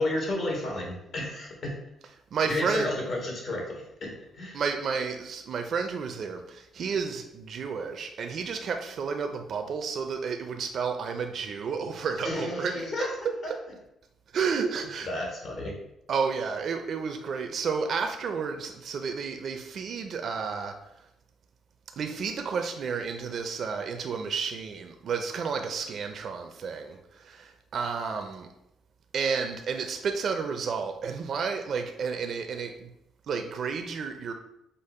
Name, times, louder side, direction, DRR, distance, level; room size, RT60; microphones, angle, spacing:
voice 1, 0.0-1.8 2.4-3.7 4.0-4.6 12.2-13.3 15.1-15.7, left 1 dB, 65° left, -1 dB, 1.3 m, -31 dB
voice 2, 2.3-2.9 4.5-13.0 13.5-13.6 14.3-15.1 16.1-20.7 22.0-28.5 29.1-32.9 33.3-34.3, right 5 dB, 60° right, 5 dB, 0.4 m, -31 dB
5.1 x 2.1 x 4.1 m, 0.83 s
cardioid pair, 90°, 0 cm